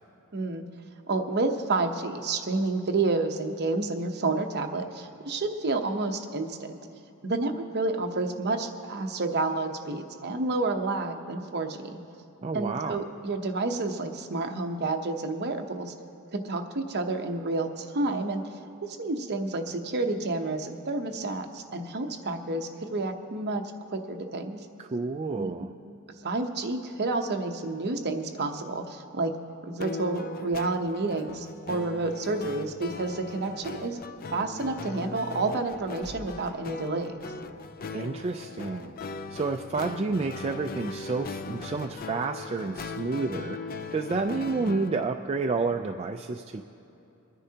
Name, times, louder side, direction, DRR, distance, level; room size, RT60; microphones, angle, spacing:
voice 1, 0.3-0.6 1.1-6.7 7.2-12.0 12.5-15.9 16.3-18.4 18.8-23.6 23.9-24.6 25.3-25.5 26.2-29.3 29.6-34.0 34.3-37.2 44.6-44.8, right 3 dB, 50° right, 5 dB, 0.8 m, -30 dB
voice 2, 12.4-13.0 24.8-25.7 37.9-39.0 39.3-43.6 43.9-46.6, right 4 dB, 30° right, 4 dB, 0.3 m, -30 dB
sound 1, 29.8-45.0, left 3 dB, 40° left, 0.4 m, -39 dB
sound 2, 31.8-32.4 32.7-32.8 33.6-33.7 34.4-34.6 35.0-35.1 35.7-36.8, equal, 5° left, 3.0 m, -49 dB
24.0 x 9.9 x 2.8 m, 2.9 s
head